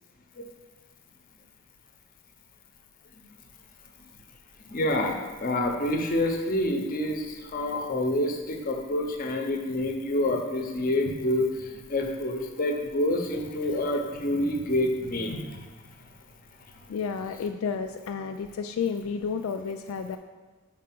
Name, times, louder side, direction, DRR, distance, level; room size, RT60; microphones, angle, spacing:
voice 1, 4.7-15.6, left 1 dB, 40° left, 3 dB, 0.8 m, -27 dB
voice 2, 16.9-20.2, left 6 dB, 80° left, 6 dB, 0.3 m, -31 dB
4.8 x 4.6 x 6.0 m, 1.3 s
head